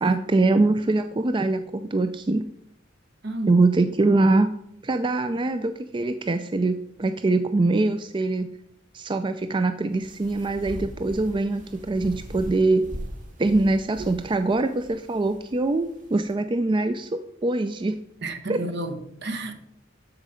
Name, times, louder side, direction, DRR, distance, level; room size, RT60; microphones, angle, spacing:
voice 1, 0.0-2.4 3.5-4.5 4.8-8.5 8.9-12.9 13.4-17.9 18.5-18.6, right 2 dB, 25° right, 0.4 m, -23 dB
voice 2, 3.2-3.6 18.2-19.6, right 2 dB, 60° right, 1.2 m, -31 dB
sound 1, 9.9-16.3, equal, 45° right, 1.8 m, -41 dB
13.0 x 5.2 x 5.0 m
head